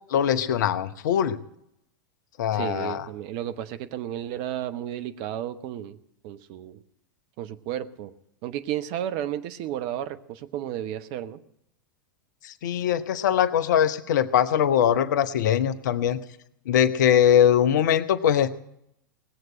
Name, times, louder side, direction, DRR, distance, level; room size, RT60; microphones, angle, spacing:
voice 1, 0.1-1.4 2.4-3.1 12.4-16.2 16.7-18.6, left 9 dB, 60° left, 13 dB, 0.8 m, -22 dB
voice 2, 2.5-6.0 6.2-6.8 7.4-8.1 8.4-11.4, right 11 dB, 45° right, 10 dB, 1.0 m, -33 dB
19.0 x 7.9 x 8.7 m, 0.78 s
figure-of-eight pair, 90°, 11 cm